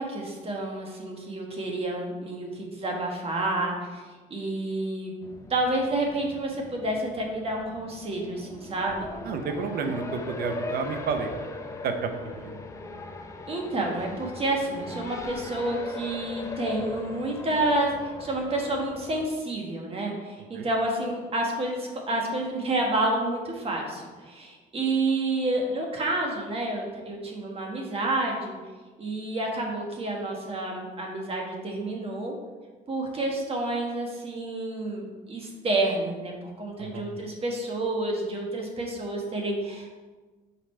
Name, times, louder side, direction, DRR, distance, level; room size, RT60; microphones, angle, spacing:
voice 1, 0.0-4.0 4.3-5.1 5.5-9.1 13.5-28.5 29.0-32.3 32.9-39.9, right 2 dB, 35° right, 0 dB, 1.4 m, -29 dB
Race car auto racing, 5.2-19.3, left 3 dB, 20° left, 0.6 m, -40 dB
voice 2, 9.2-11.3 11.8-12.6 20.5-20.7 36.8-37.1, right 5 dB, 65° right, 6 dB, 0.8 m, -31 dB
5.5 x 4.9 x 4.4 m, 1.3 s
cardioid pair, 110°, 17 cm